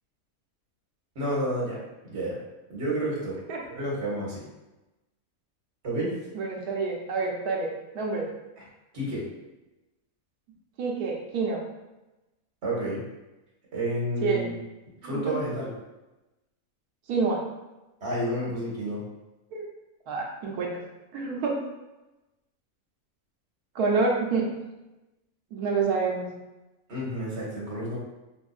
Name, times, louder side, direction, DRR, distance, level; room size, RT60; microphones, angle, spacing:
voice 1, 1.1-2.4 2.7-3.4 3.7-4.4 5.8-6.2 8.9-9.2 12.6-13.0 13.7-14.6 15.0-15.7 18.0-19.1 26.9-28.0, right 1 dB, 50° right, -6 dB, 1.5 m, -30 dB
voice 2, 6.3-8.3 10.8-11.6 14.2-14.5 15.0-15.4 17.1-17.4 19.5-19.7 20.1-20.7 21.1-21.6 23.7-24.5 25.5-26.3, right 4 dB, 90° right, 0 dB, 1.3 m, -27 dB
5.2 x 2.6 x 2.3 m, 1.0 s
omnidirectional pair, 1.6 m